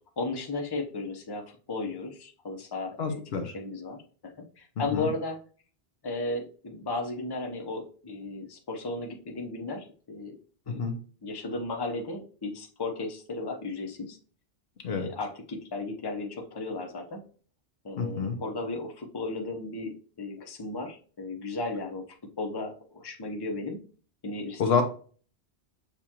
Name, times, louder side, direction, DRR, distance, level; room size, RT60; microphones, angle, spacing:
voice 1, 0.2-5.4 6.0-10.4 10.7-10.8 11.2-14.2 14.9-17.2 17.8-22.0 22.4-23.8 24.2-24.8, left 3 dB, 25° left, 2 dB, 0.8 m, -35 dB
voice 2, 3.0-3.5 4.9-5.1 10.8-10.9 14.8-15.1 18.0-18.4 24.6-24.8, left 5 dB, 65° left, 5 dB, 1.0 m, -27 dB
6.8 x 2.5 x 2.9 m, 0.40 s
omnidirectional pair, 1.1 m